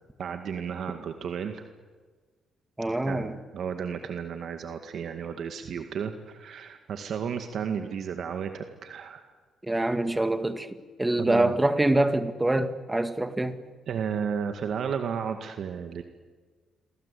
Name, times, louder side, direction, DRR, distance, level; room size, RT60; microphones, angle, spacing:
voice 1, 0.2-1.6 3.1-9.3 9.7-10.0 11.2-11.5 13.9-16.0, right 7 dB, 65° right, 2.0 m, -33 dB
voice 2, 2.8-3.4 9.6-10.7 11.0-13.6, right 1 dB, 15° right, 2.1 m, -25 dB
28.5 x 23.0 x 8.5 m
cardioid pair, 90°, 0 cm